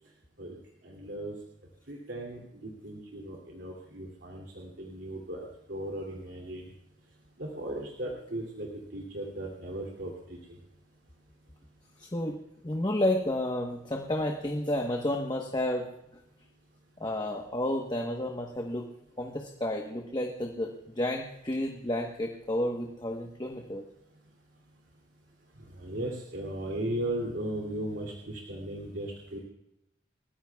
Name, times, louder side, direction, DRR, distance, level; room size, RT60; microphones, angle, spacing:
voice 1, 0.8-1.3 1.9-6.7 7.4-10.6 25.8-29.4, right 1 dB, 75° right, -1 dB, 2.7 m, -37 dB
voice 2, 12.0-12.3 12.6-15.9 17.0-18.9 19.2-23.8, left 1 dB, 25° left, 2 dB, 1.1 m, -31 dB
29.5 x 14.5 x 2.3 m, 0.88 s
head